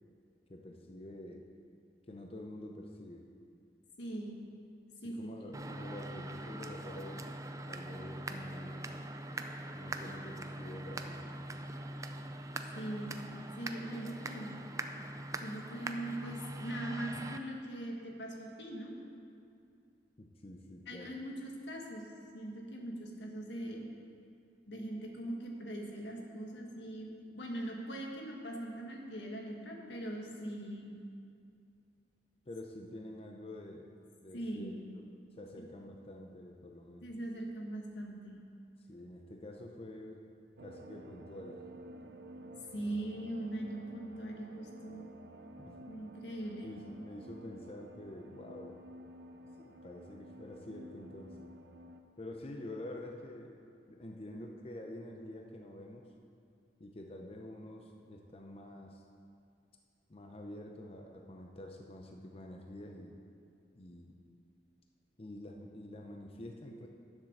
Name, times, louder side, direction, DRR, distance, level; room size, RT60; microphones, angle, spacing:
voice 1, 0.5-1.5 2.1-3.3 5.0-7.3 7.7-9.0 9.7-11.5 20.2-21.2 32.5-33.9 34.2-34.7 35.3-37.1 38.8-40.2 40.6-41.7 42.8-43.0 45.6-45.9 46.6-48.8 49.6-51.5 52.2-53.6 53.9-56.1 56.8-59.0 60.1-63.2 63.7-64.1 65.2-66.9, left 1 dB, 35° left, 1 dB, 0.7 m, -47 dB
voice 2, 4.0-4.5 5.0-5.6 12.7-14.6 15.4-19.0 20.9-23.9 24.7-31.0 34.3-34.9 37.0-38.4 42.7-45.0 45.9-46.8, right 1 dB, 90° left, 0 dB, 1.7 m, -41 dB
sound 1, 5.5-17.4, right 1 dB, 20° right, 0.4 m, -42 dB
sound 2, 40.6-52.0, right 1 dB, 75° right, 0.6 m, -52 dB
10.5 x 7.4 x 6.5 m, 2.4 s
head